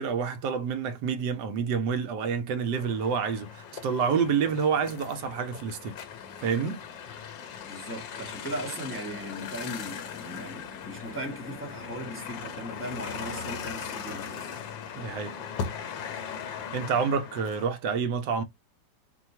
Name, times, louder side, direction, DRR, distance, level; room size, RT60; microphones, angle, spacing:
voice 1, 0.0-6.0 6.4-6.8 15.0-15.4 16.7-18.4, right 6 dB, 75° right, 1.2 m, -28 dB
sound 1, 2.7-17.7, left 7 dB, 85° left, 1.6 m, -39 dB
voice 2, 7.6-14.5, right 1 dB, 10° left, 0.9 m, -38 dB
4.6 x 2.3 x 4.2 m
omnidirectional pair, 1.9 m